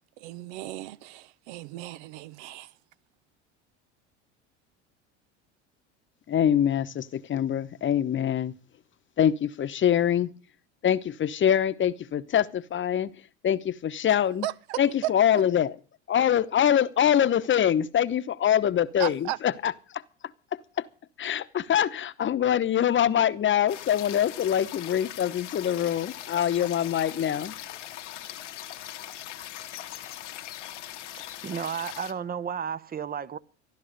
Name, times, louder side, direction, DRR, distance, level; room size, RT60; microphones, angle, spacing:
voice 1, 0.2-2.7 14.4-15.1 19.0-19.4, right 16 dB, 70° right, 0.9 m, -35 dB
voice 2, 6.3-8.5 9.2-10.3 10.8-13.1 13.4-14.5 14.8-15.7 16.1-20.0 20.8-20.9 21.2-27.5, left 9 dB, 35° left, 1.0 m, -24 dB
sound 1, 23.7-32.1, left 13 dB, 90° left, 1.5 m, -40 dB
voice 3, 31.1-33.4, right 7 dB, 25° right, 0.8 m, -33 dB
14.0 x 11.5 x 6.6 m
hypercardioid pair, 85°, 35 cm